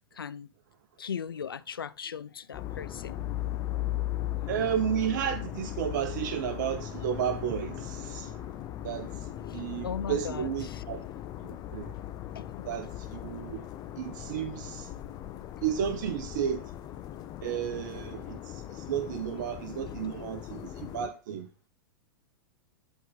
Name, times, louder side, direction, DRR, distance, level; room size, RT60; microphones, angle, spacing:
voice 1, 0.1-0.5 1.0-3.2 9.5-10.8 12.4-12.7, left 7 dB, 80° left, 0.4 m, -38 dB
sound 1, 2.5-21.1, left 13 dB, 35° left, 0.7 m, -38 dB
voice 2, 4.5-8.5 8.8-11.0 11.4-11.9 12.6-13.6 14.0-15.0 15.6-16.7 17.4-21.7, right 9 dB, 55° right, 0.9 m, -33 dB
11.5 x 4.0 x 4.1 m
figure-of-eight pair, 95°, 12 cm